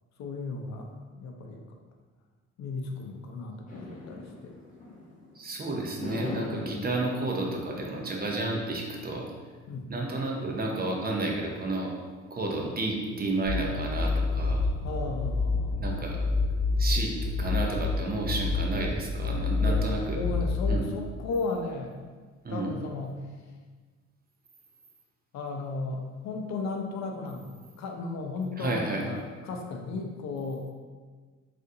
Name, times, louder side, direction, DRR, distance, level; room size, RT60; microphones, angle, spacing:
voice 1, 0.2-0.9 1.2-1.8 2.6-4.6 6.2-6.8 9.7-9.9 14.8-15.9 19.6-21.9 22.5-23.4 25.3-27.5 27.8-30.7, left 3 dB, 65° left, 3 dB, 0.5 m, -35 dB
sound 1, 3.7-5.4 6.0-8.3, left 2 dB, 25° left, 0.9 m, -41 dB
voice 2, 5.4-9.3 9.9-11.9 12.3-14.7 15.8-16.3 16.8-17.1 17.4-20.2 20.7-20.8 22.4-22.7 28.6-29.0, right 2 dB, 30° right, 0 dB, 0.6 m, -31 dB
sound 2, 13.4-20.8, left 3 dB, 45° left, 1.0 m, -28 dB
3.8 x 2.5 x 2.7 m, 1.5 s
cardioid pair, 90°, 30 cm